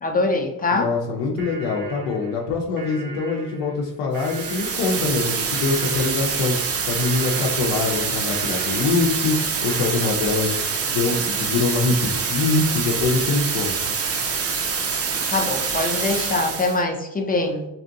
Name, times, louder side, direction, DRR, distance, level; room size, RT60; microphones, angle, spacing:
voice 1, 0.0-0.9 15.3-17.7, left 2 dB, 20° left, 3 dB, 0.5 m, -23 dB
voice 2, 0.7-10.6 10.9-13.8, left 4 dB, 75° left, -2 dB, 0.6 m, -24 dB
sound 1, 1.4-9.9, right 4 dB, 90° right, 0.6 m, -40 dB
sound 2, 4.1-16.8, right 5 dB, 35° right, 0.5 m, -25 dB
2.5 x 2.1 x 2.6 m, 0.94 s
hypercardioid pair, 50°, 46 cm